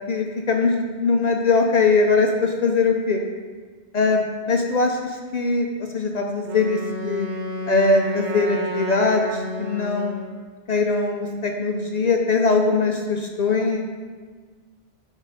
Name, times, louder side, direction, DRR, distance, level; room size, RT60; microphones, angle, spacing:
voice 1, 0.1-3.2 3.9-7.3 7.7-10.2 10.7-13.8, left 3 dB, 55° left, 2 dB, 0.5 m, -21 dB
Wind instrument woodwind instrument, 6.5-10.4, equal, 50° right, 0.7 m, -31 dB
6.5 x 6.2 x 4.0 m, 1.5 s
omnidirectional pair, 1.2 m